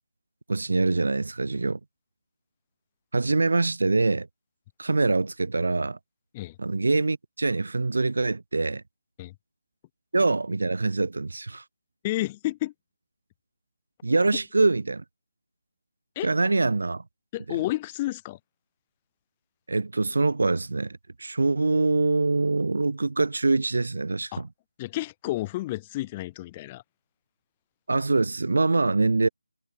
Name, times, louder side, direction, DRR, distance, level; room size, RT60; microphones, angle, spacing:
voice 1, 0.5-1.8 3.1-4.3 4.8-6.0 6.6-8.8 10.1-11.6 14.0-15.0 16.2-17.0 17.5-17.6 19.7-24.5 27.9-29.3, right 3 dB, 65° right, 0.6 m, -24 dB
voice 2, 12.0-12.7 16.2-16.3 17.3-18.4 24.3-24.4 24.8-26.8, left 17 dB, 20° left, 0.3 m, -31 dB
figure-of-eight pair, 155°, 0 cm